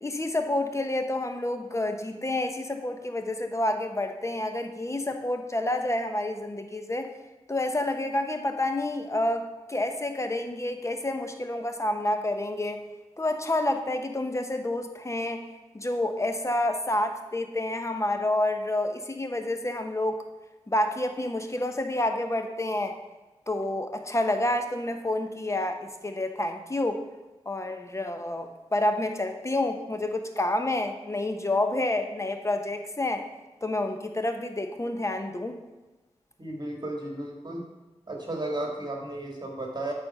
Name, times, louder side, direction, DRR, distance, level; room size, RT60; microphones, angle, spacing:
voice 1, 0.0-7.1 7.5-12.8 13.2-15.4 15.7-20.2 20.7-23.0 23.5-27.0 27.5-33.3 33.6-35.6, left 1 dB, 25° left, 6 dB, 1.0 m, -29 dB
voice 2, 36.4-37.6 38.1-39.9, right 1 dB, 40° right, 0 dB, 1.8 m, -34 dB
8.7 x 4.4 x 5.4 m, 1.1 s
cardioid pair, 40°, 11 cm